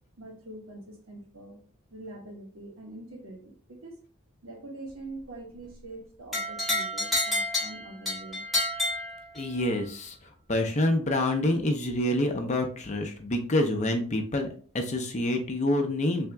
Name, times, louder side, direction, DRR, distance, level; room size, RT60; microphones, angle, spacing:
voice 1, 0.2-1.6 1.9-4.0 4.4-8.4, right 2 dB, 75° right, 0 dB, 1.2 m, -44 dB
sound 1, 6.3-9.7, left 1 dB, ahead, 1.2 m, -29 dB
voice 2, 9.4-10.1 10.5-14.5 14.7-16.3, left 1 dB, 35° left, 4 dB, 0.6 m, -27 dB
3.4 x 2.8 x 3.3 m, 0.42 s
head